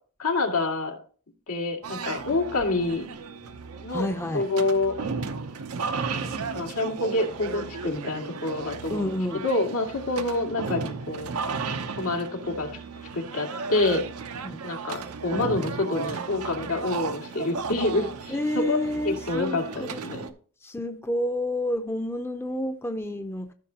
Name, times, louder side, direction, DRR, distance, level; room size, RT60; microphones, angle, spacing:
voice 1, 0.2-1.0 1.5-3.1 3.8-4.1 4.3-4.9 6.5-9.1 9.4-11.3 12.0-12.7 13.1-14.0 14.6-18.8 19.0-20.2, left 2 dB, 85° left, 2.1 m, -27 dB
sound 1, 1.8-20.3, right 5 dB, 85° right, 0.8 m, -35 dB
voice 2, 3.9-4.5 8.9-9.4 14.4-14.6 18.3-20.3 20.6-23.5, left 1 dB, 10° left, 0.6 m, -30 dB
14.0 x 6.0 x 2.8 m
head